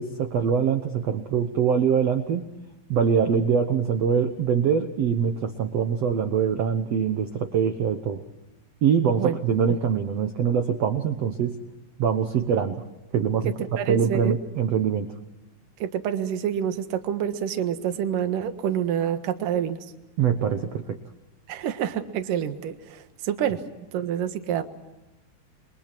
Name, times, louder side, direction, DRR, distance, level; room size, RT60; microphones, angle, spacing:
voice 1, 0.0-2.5 2.9-8.2 8.8-11.6 12.0-12.8 13.1-13.5 13.9-15.1 20.2-21.0, right 7 dB, 80° right, 7 dB, 1.4 m, -23 dB
voice 2, 13.8-14.3 15.8-19.9 21.5-23.6 23.9-24.6, right 9 dB, 60° right, 8 dB, 2.8 m, -27 dB
29.5 x 23.5 x 6.0 m, 1.0 s
omnidirectional pair, 4.7 m